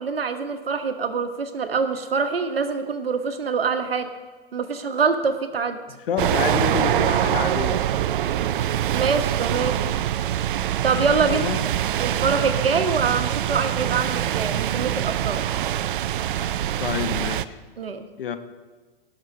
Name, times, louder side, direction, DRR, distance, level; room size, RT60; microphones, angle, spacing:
voice 1, 0.0-4.1 4.5-5.8 8.9-9.8 10.8-11.4 12.0-15.4 17.8-18.0, right 5 dB, 80° right, 8 dB, 1.3 m, -24 dB
voice 2, 6.1-7.8 11.2-11.6 16.8-17.6 18.2-18.4, left 8 dB, 70° left, 9 dB, 1.1 m, -28 dB
sound 1, 6.2-17.5, right 11 dB, 60° right, 0.5 m, -24 dB
18.0 x 6.5 x 5.0 m, 1.4 s
hypercardioid pair, 110°, 29 cm